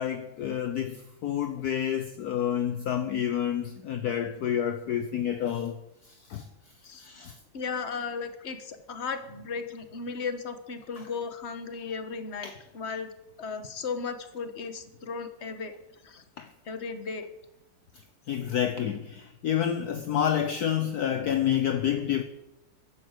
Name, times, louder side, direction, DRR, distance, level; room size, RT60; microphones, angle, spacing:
voice 1, 0.0-5.8 6.1-6.5 7.0-7.4 11.0-11.1 12.4-12.6 16.4-16.5 18.3-22.2, left 9 dB, 60° left, 1.3 m, -29 dB
voice 2, 7.5-13.1 13.4-15.7 16.0-16.2 16.6-17.3, left 5 dB, 35° left, 1.6 m, -35 dB
15.5 x 12.0 x 6.7 m
omnidirectional pair, 2.1 m